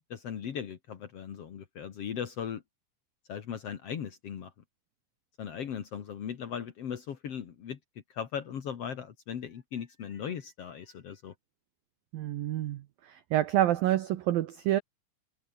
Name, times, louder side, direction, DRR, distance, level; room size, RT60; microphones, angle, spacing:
voice 1, 0.1-2.6 3.3-4.5 5.4-7.8 8.1-11.3, left 8 dB, 60° left, 1.6 m, -38 dB
voice 2, 12.1-14.8, right 13 dB, 75° right, 2.1 m, -28 dB
omnidirectional pair, 5.5 m